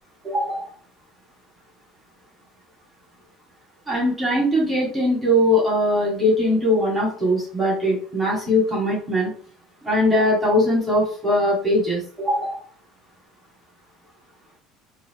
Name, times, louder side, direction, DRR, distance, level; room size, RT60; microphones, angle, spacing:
voice 1, 0.2-0.7 3.9-9.3 9.8-12.6, left 1 dB, 10° right, -4 dB, 2.0 m, -21 dB
4.0 x 2.8 x 4.7 m, 0.43 s
cardioid pair, 150°, 0 cm